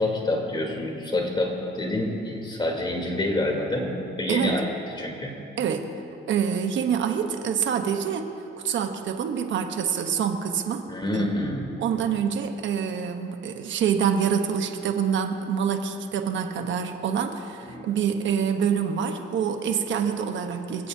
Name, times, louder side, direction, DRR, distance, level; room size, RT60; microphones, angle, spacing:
voice 1, 0.0-4.7 5.0-5.3 10.9-11.6 17.7-17.9, left 1 dB, 25° left, 0 dB, 3.4 m, -27 dB
voice 2, 4.3-4.6 5.6-5.9 6.3-8.3 8.6-11.4 11.8-20.9, right 7 dB, 70° right, 6 dB, 1.1 m, -26 dB
26.0 x 16.0 x 2.8 m, 2.8 s
cardioid pair, 90°, 20 cm